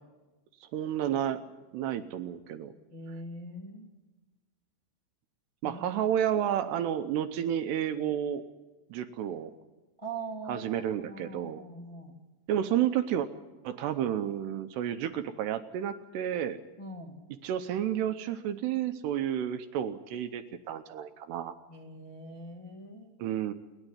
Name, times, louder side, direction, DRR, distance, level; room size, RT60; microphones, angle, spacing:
voice 1, 0.6-1.5 1.7-2.7 5.6-8.4 8.9-9.5 10.5-11.6 12.5-13.3 13.6-16.6 17.4-21.6 23.2-23.5, right 10 dB, 75° right, 9 dB, 2.6 m, -31 dB
voice 2, 2.9-3.9 5.6-5.8 10.0-12.1 16.8-17.2 21.7-23.1, right 2 dB, 55° left, 0 dB, 0.3 m, -42 dB
28.0 x 11.0 x 10.0 m, 1.1 s
omnidirectional pair, 5.4 m